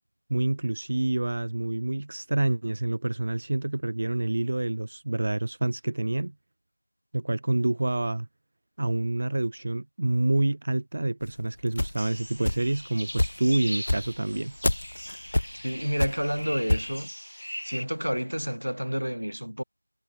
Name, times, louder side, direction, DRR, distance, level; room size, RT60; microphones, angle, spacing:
voice 1, 0.3-6.3 7.1-8.3 8.8-14.6, right 2 dB, 10° right, 0.7 m, -27 dB
sound 1, 11.2-12.8 13.2-16.9, left 1 dB, 15° left, 1.3 m, -27 dB
sound 2, 12.0-17.9, equal, 85° left, 4.2 m, -40 dB
voice 2, 15.6-17.1 17.6-19.6, equal, 80° right, 4.3 m, -29 dB
figure-of-eight pair, 180°, 0 cm